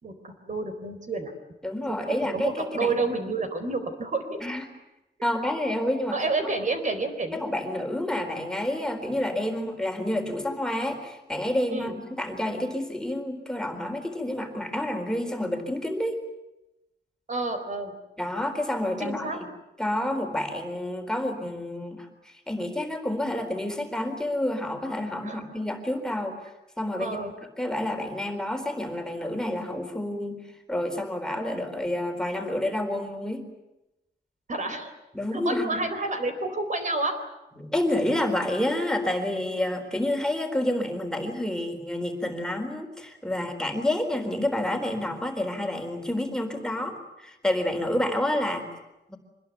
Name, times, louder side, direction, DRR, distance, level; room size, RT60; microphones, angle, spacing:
voice 1, 0.0-1.3 2.3-4.4 6.1-7.4 11.7-11.9 17.3-17.9 19.0-19.4 25.2-25.4 27.0-27.3 34.5-34.9 35.3-37.1 47.7-47.8, right 3 dB, 45° right, 7 dB, 4.1 m, -29 dB
voice 2, 1.6-2.9 4.4-4.6 5.2-6.2 7.3-16.2 18.2-19.3 19.8-26.5 26.8-27.3 27.6-33.5 35.1-35.8 37.6-48.7 49.1-49.2, left 1 dB, 5° left, 4 dB, 4.1 m, -29 dB
25.5 x 21.0 x 9.4 m, 0.94 s
wide cardioid pair, 115°, 17 cm